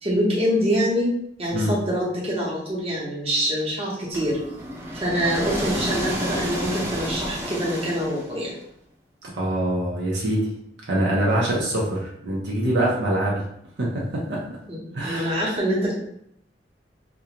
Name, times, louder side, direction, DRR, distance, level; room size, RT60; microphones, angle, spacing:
voice 1, 0.0-4.4 4.9-8.6 14.7-14.8 15.0-16.0, equal, 35° right, -5 dB, 0.8 m, -25 dB
sound 1, 4.1-8.5, equal, 15° right, 0.4 m, -30 dB
voice 2, 9.2-10.5 10.9-13.4 13.8-14.4 14.9-15.5, right 1 dB, 75° right, -3 dB, 0.6 m, -24 dB
2.4 x 2.2 x 2.8 m, 0.72 s
head